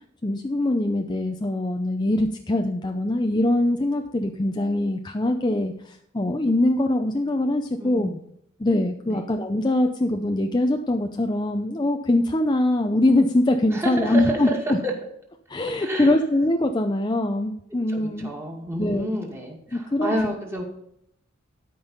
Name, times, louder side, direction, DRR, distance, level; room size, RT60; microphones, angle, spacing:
voice 1, 0.2-8.1 8.6-14.8 15.5-18.3 18.8-19.1 19.7-20.1, left 1 dB, 20° left, 4 dB, 0.6 m, -23 dB
voice 2, 7.8-8.2 9.1-9.2 13.7-14.6 14.8-14.9 15.8-16.1 17.9-20.6, right 1 dB, 15° right, -1 dB, 2.2 m, -29 dB
12.5 x 5.4 x 5.5 m, 0.74 s
head